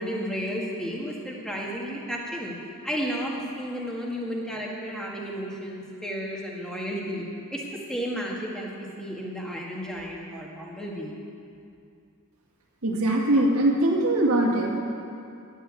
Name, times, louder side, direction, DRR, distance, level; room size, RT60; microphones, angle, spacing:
voice 1, 0.0-2.5 2.8-7.2 7.5-11.1, equal, 5° left, -3 dB, 1.7 m, -32 dB
voice 2, 12.8-14.8, right 1 dB, 70° right, -2 dB, 1.9 m, -22 dB
11.5 x 7.7 x 8.3 m, 2.5 s
head